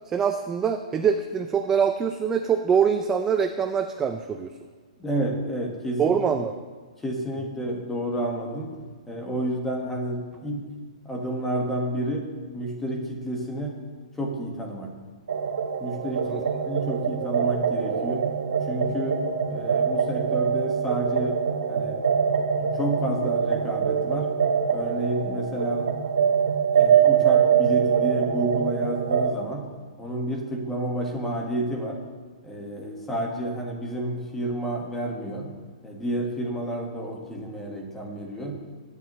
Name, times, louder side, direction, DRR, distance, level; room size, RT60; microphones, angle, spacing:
voice 1, 0.1-4.5 6.0-6.6 16.3-16.4, right 7 dB, 10° right, 6 dB, 0.4 m, -24 dB
voice 2, 5.0-6.2 7.0-8.7 9.1-10.6 11.0-12.2 12.5-13.8 14.2-14.9 15.8-16.4 16.7-18.3 18.7-19.2 19.5-21.4 21.7-22.0 22.6-24.3 24.7-25.9 26.7-29.6 30.0-32.0 32.4-35.5 35.8-38.5, right 1 dB, 5° left, 0 dB, 1.5 m, -30 dB
sound 1, 15.3-29.3, right 7 dB, 80° right, 1.2 m, -24 dB
20.5 x 9.8 x 3.1 m, 1.5 s
hypercardioid pair, 170°, 4 cm